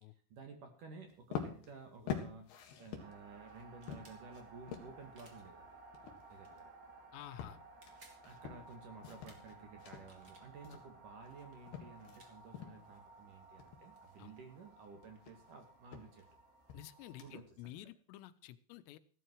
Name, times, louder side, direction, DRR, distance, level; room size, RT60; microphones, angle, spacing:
voice 1, 0.3-2.5 2.8-5.8 6.3-6.7 8.2-16.2 17.2-17.8, right 4 dB, 50° right, 5 dB, 2.9 m, -54 dB
sound 1, 1.1-12.2 12.5-13.0 13.3-17.6, left 8 dB, 60° left, 3.5 m, -47 dB
sound 2, 3.0-17.4, right 3 dB, 80° right, 5.9 m, -58 dB
sound 3, 3.8-4.2 5.1-5.4 6.4-6.6 7.6-8.2 9.2-9.4 9.9-10.5 11.4-11.6 12.2-12.3 13.7-13.8 14.0-15.3, right 2 dB, 30° right, 2.0 m, -63 dB
voice 2, 7.1-7.6 14.2-14.3 16.7-19.0, left 14 dB, 90° left, 14 dB, 3.4 m, -51 dB
15.5 x 12.5 x 4.7 m, 0.43 s
omnidirectional pair, 5.7 m